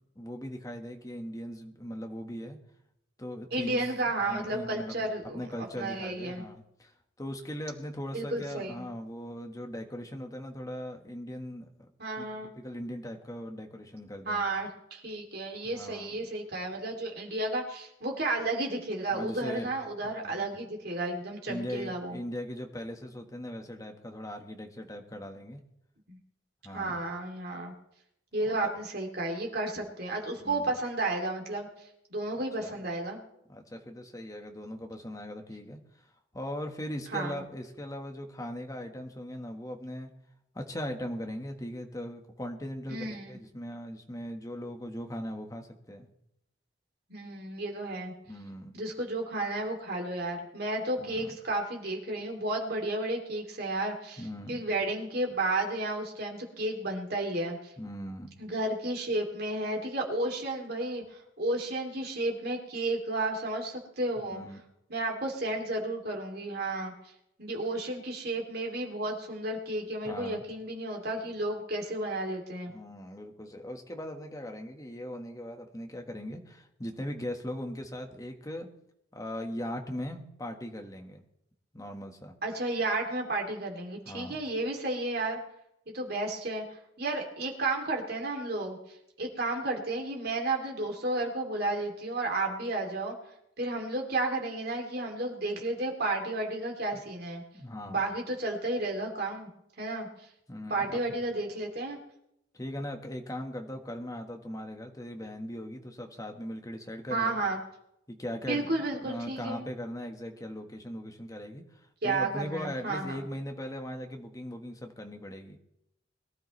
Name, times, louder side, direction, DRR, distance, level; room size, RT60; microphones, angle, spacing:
voice 1, 0.1-2.6 3.2-3.9 4.2-11.7 12.2-12.3 12.5-14.5 15.6-16.1 19.1-19.7 20.0-20.5 21.5-25.6 26.6-27.0 28.4-28.8 30.4-30.7 32.3-32.8 33.5-40.1 40.5-46.1 48.2-48.7 51.0-51.3 54.2-54.6 57.8-58.3 64.2-64.6 70.0-70.4 72.7-78.7 79.1-81.2 81.7-82.3 84.1-84.4 96.9-97.0 97.5-98.0 100.5-101.0 102.5-107.4 108.1-115.6, equal, 20° left, 4 dB, 1.4 m, -39 dB
voice 2, 3.5-5.4 5.8-6.4 8.1-8.8 12.0-12.5 14.3-22.2 26.1-26.2 26.7-27.7 28.3-31.7 32.1-33.2 37.1-37.3 42.9-43.4 47.1-48.1 48.7-54.2 54.5-57.7 58.4-64.4 64.9-66.9 67.4-72.7 82.4-85.4 85.9-86.6 87.0-88.8 89.2-93.2 93.6-97.4 97.9-99.5 99.8-100.1 100.7-102.0 107.1-107.6 108.5-109.6 112.0-113.2, right 2 dB, 55° right, 1 dB, 2.8 m, -32 dB
22.0 x 13.0 x 3.2 m, 0.80 s
head